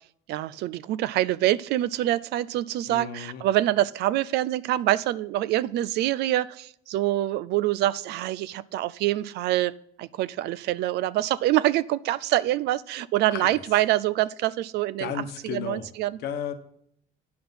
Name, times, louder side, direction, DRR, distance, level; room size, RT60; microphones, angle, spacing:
voice 1, 0.3-9.7 10.0-15.1 15.4-16.2, right 14 dB, 75° right, 19 dB, 0.4 m, -25 dB
voice 2, 2.9-3.4 13.3-13.6 15.0-15.9 16.2-16.5, left 8 dB, 75° left, 8 dB, 1.1 m, -34 dB
9.6 x 6.0 x 5.5 m, 0.70 s
cardioid pair, 110°, 17 cm